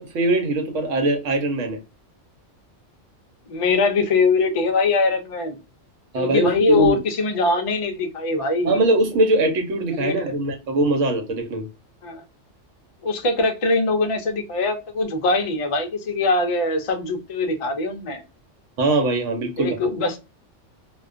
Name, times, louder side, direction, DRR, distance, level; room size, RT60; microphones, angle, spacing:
voice 1, 0.0-1.8 6.1-7.0 8.6-11.6 18.8-19.8, right 2 dB, 80° right, 1.1 m, -21 dB
voice 2, 3.5-5.6 6.1-8.8 10.0-10.3 12.0-12.2 13.0-18.2 19.6-20.2, left 3 dB, 50° left, 0.4 m, -22 dB
2.4 x 2.3 x 2.3 m
omnidirectional pair, 1.3 m